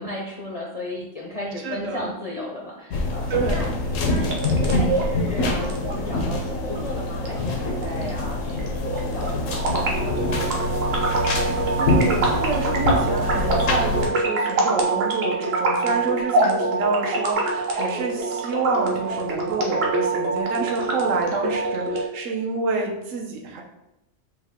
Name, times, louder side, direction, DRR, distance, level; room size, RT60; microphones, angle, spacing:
voice 1, 0.0-3.7 4.0-10.5 15.9-16.2, left 1 dB, 55° left, -3 dB, 0.4 m, -35 dB
voice 2, 1.6-2.1 3.3-3.6 11.8-23.6, right 4 dB, 85° right, 1 dB, 1.1 m, -28 dB
sound 1, 2.9-14.1, left 2 dB, 85° left, 1.0 m, -25 dB
sound 2, 4.1-22.1, right 3 dB, 55° right, 0.9 m, -25 dB
4.9 x 2.2 x 3.5 m, 0.92 s
omnidirectional pair, 1.3 m